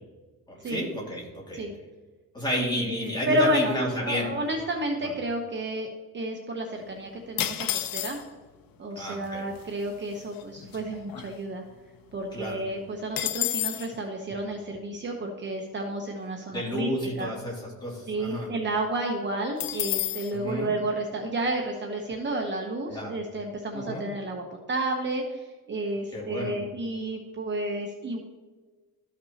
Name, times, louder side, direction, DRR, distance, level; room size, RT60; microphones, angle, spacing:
voice 1, 0.5-1.7 2.3-4.3 8.9-9.4 12.3-12.6 16.5-18.5 20.3-20.7 22.9-23.1 23.7-24.0 26.1-26.6, left 1 dB, 10° left, -4 dB, 2.7 m, -31 dB
voice 2, 2.6-3.8 4.0-5.9 6.1-8.2 8.8-11.6 12.1-16.9 17.2-17.3 18.1-28.2, right 1 dB, 30° right, 2 dB, 0.9 m, -31 dB
sound 1, 7.4-8.5 9.3-9.4 9.5-9.9 10.3-11.8 12.1-12.2 12.5-13.9 19.6-20.3, left 12 dB, 75° left, 0.7 m, -30 dB
13.5 x 6.0 x 2.9 m, 1.3 s
cardioid pair, 155°, 35 cm